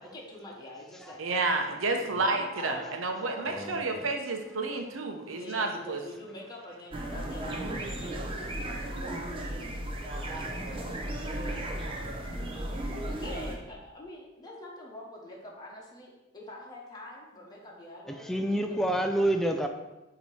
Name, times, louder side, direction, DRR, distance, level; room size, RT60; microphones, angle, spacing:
voice 1, 0.0-1.4 2.3-3.8 5.3-8.1 9.4-10.9 11.3-11.6 13.2-19.1, left 1 dB, 20° left, -3 dB, 1.0 m, -45 dB
voice 2, 1.2-6.0, right 3 dB, 85° right, 4 dB, 0.8 m, -30 dB
voice 3, 3.5-4.1 18.1-19.7, right 1 dB, ahead, 4 dB, 0.4 m, -29 dB
sound 1, 6.9-13.5, right 1 dB, 25° right, 0.8 m, -35 dB
6.9 x 2.9 x 4.8 m, 1.0 s
head